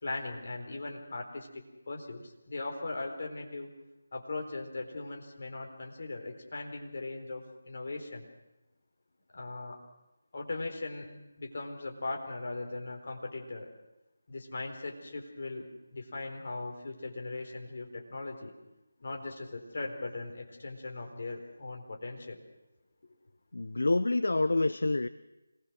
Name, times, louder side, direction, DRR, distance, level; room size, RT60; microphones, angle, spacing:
voice 1, 0.0-3.7 4.1-8.3 9.3-9.8 10.3-11.1 11.4-13.7 14.3-18.5 19.0-22.4, left 2 dB, 45° left, 2 dB, 4.0 m, -39 dB
voice 2, 23.5-25.1, left 2 dB, 65° left, 13 dB, 0.7 m, -27 dB
26.0 x 20.0 x 6.3 m, 0.97 s
figure-of-eight pair, 155°, 0 cm